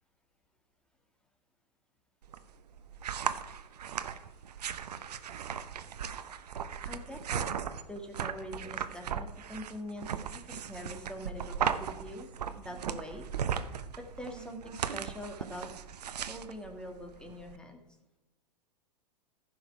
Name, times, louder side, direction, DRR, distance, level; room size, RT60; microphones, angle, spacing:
sound 1, 2.2-17.5, right 8 dB, 75° right, 0.7 m, -37 dB
voice 1, 6.9-7.4 7.9-12.3 12.6-13.2 14.2-15.9 16.3-17.8, left 1 dB, 5° left, 3 dB, 1.7 m, -44 dB
14.5 x 5.5 x 4.7 m, 1.1 s
hypercardioid pair, 105°, 20 cm